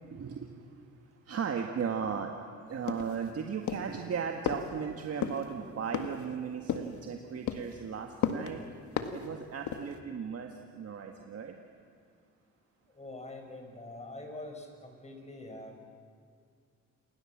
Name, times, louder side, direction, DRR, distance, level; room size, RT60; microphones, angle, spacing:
voice 1, 0.0-2.4 2.7-8.8 9.1-11.5, right 6 dB, 55° right, 3 dB, 1.9 m, -36 dB
sound 1, 2.9-3.3 3.7-4.0 4.5-4.7 5.2-5.4 5.9-6.3 6.7-7.0 7.5-7.8 8.2-8.5 9.0-9.3 9.7-10.0, left 9 dB, 75° left, 1.8 m, -33 dB
voice 2, 13.0-15.8, left 2 dB, 20° left, 4 dB, 5.7 m, -44 dB
28.0 x 22.5 x 7.5 m, 2.2 s
cardioid pair, 90°, 30 cm